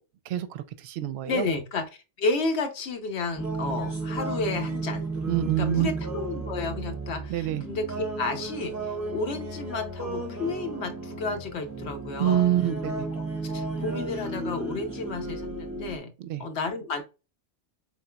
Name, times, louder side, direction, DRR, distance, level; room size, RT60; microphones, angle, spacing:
voice 1, 0.3-1.4 5.3-5.9 7.3-7.6 12.2-13.1 16.2-16.4, right 12 dB, 70° right, 0.8 m, -26 dB
voice 2, 1.2-1.9 2.2-5.0 5.6-12.4 13.1-16.1 16.4-17.0, left 3 dB, 70° left, 1.0 m, -32 dB
sound 1, 3.4-16.0, right 3 dB, 15° right, 1.0 m, -33 dB
4.0 x 3.7 x 2.2 m
omnidirectional pair, 1.2 m